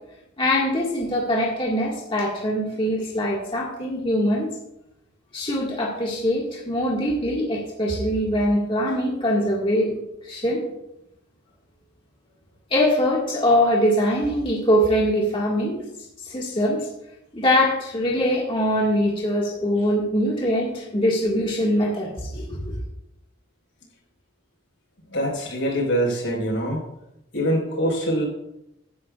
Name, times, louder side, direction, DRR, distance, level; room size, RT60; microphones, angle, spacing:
voice 1, 0.4-4.5 5.3-10.6 12.7-15.8 16.3-16.9 17.3-22.7, equal, 25° left, -4 dB, 1.9 m, -23 dB
voice 2, 25.1-26.8 27.3-28.3, equal, 80° left, -1 dB, 4.8 m, -24 dB
16.0 x 10.0 x 2.5 m, 0.85 s
head